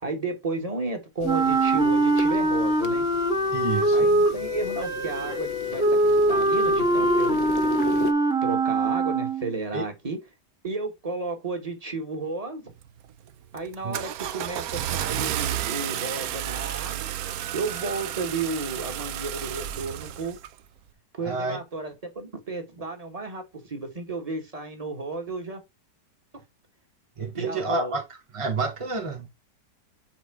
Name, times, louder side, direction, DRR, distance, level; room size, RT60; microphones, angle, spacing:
voice 1, 0.0-3.0 3.9-7.4 8.4-10.2 10.6-12.6 13.5-17.1 17.5-20.4 21.1-25.6 27.3-27.9, right 3 dB, 25° right, 1.2 m, -33 dB
sound 1, 1.2-8.1, left 7 dB, 75° left, 1.3 m, -36 dB
Wind instrument woodwind instrument, 1.2-9.5, right 2 dB, 5° right, 0.7 m, -23 dB
voice 2, 3.5-4.1 9.7-9.8 13.8-14.0 21.2-21.6 27.2-28.0 28.3-29.3, right 3 dB, 40° right, 0.4 m, -29 dB
Car / Engine starting, 12.8-13.1 13.6-20.5, right 11 dB, 70° right, 0.9 m, -31 dB
6.1 x 3.6 x 4.6 m
omnidirectional pair, 1.9 m